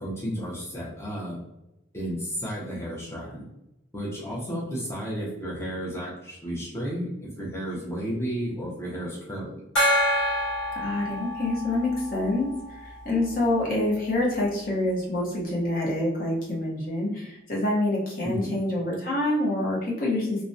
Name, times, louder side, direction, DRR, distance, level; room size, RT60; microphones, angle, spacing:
voice 1, 0.0-1.4 1.9-3.5 3.9-9.6 18.2-18.6, equal, 15° left, -6 dB, 0.6 m, -32 dB
Gong, 9.8-13.0, equal, 75° left, 0.9 m, -27 dB
voice 2, 10.8-20.4, left 1 dB, 50° left, -4 dB, 0.7 m, -26 dB
2.3 x 2.0 x 2.5 m, 0.89 s
head